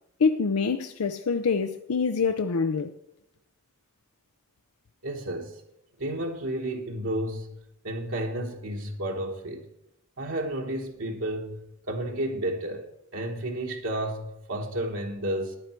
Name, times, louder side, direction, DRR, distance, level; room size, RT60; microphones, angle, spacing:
voice 1, 0.2-2.9, left 5 dB, 85° left, 0.6 m, -25 dB
voice 2, 5.0-5.6 6.0-7.6 7.8-9.7 10.2-12.9 13.1-15.6, right 1 dB, 65° right, 1.3 m, -32 dB
14.5 x 10.5 x 4.5 m
head